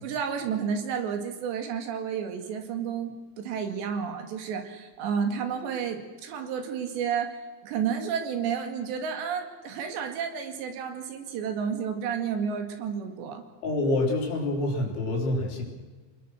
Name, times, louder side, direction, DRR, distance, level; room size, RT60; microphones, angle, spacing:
voice 1, 0.0-13.4, right 7 dB, 75° right, 6 dB, 4.2 m, -31 dB
voice 2, 13.6-15.6, left 2 dB, 85° left, 0 dB, 6.3 m, -27 dB
28.0 x 20.0 x 6.5 m, 1.4 s
omnidirectional pair, 5.2 m